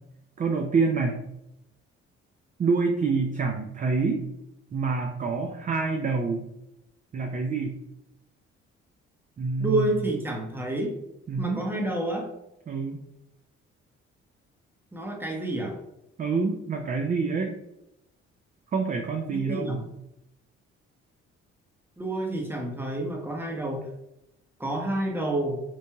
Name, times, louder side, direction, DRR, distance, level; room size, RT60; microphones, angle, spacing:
voice 1, 0.4-1.2 2.6-4.2 4.7-6.4 7.1-7.7 9.4-10.1 11.3-11.7 12.7-13.0 16.2-17.5 18.7-19.8, right 4 dB, 25° right, 3 dB, 0.4 m, -27 dB
voice 2, 9.6-10.9 11.4-12.3 14.9-15.8 19.3-19.8 22.0-23.9 24.6-25.6, right 1 dB, 5° right, 1 dB, 0.7 m, -29 dB
3.0 x 2.6 x 2.2 m, 0.85 s
hypercardioid pair, 50°, 31 cm